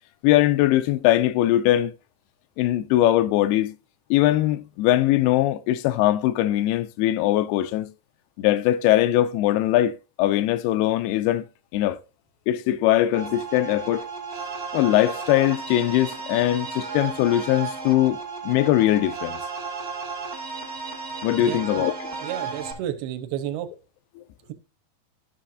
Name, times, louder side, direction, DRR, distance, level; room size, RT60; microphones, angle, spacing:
voice 1, 0.2-1.9 2.6-3.7 4.1-7.9 8.4-11.4 11.7-12.0 12.5-14.0 14.7-18.2 18.4-19.4 21.2-21.9 24.2-24.3, left 14 dB, 85° left, 2.5 m, -21 dB
sound 1, 13.1-22.7, right 4 dB, 50° right, 1.1 m, -34 dB
voice 2, 22.2-23.7, right 11 dB, 90° right, 2.8 m, -31 dB
13.0 x 5.9 x 2.5 m
omnidirectional pair, 4.6 m